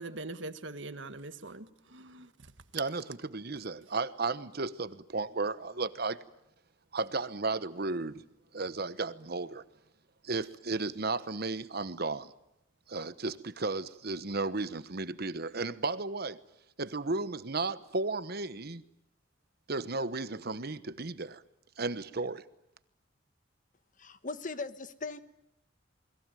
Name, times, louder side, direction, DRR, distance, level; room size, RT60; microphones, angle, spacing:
voice 1, 0.0-2.3, right 2 dB, 70° right, 1.7 m, -42 dB
voice 2, 2.7-6.2 6.9-8.2 8.5-9.6 10.2-12.3 12.9-16.4 16.8-18.8 19.7-21.4 21.8-22.4, right 3 dB, 55° right, 1.1 m, -34 dB
voice 3, 24.0-25.2, left 3 dB, 45° left, 1.4 m, -39 dB
29.0 x 21.5 x 9.2 m
head